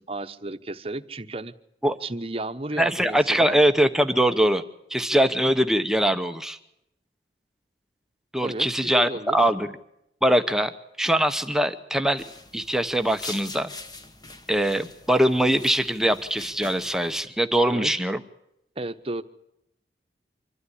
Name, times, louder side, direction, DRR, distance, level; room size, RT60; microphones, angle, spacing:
voice 1, 0.0-1.5 2.0-3.6 8.4-9.4 17.6-17.9 18.8-19.2, right 2 dB, 30° right, 8 dB, 1.1 m, -33 dB
voice 2, 2.8-4.6 4.9-6.6 8.3-9.7 10.2-10.7 11.0-12.2 12.5-13.7 14.5-18.2, right 1 dB, 5° right, 7 dB, 0.9 m, -22 dB
sound 1, 12.2-17.2, left 2 dB, 25° left, 1.4 m, -43 dB
25.5 x 13.0 x 9.9 m, 0.80 s
head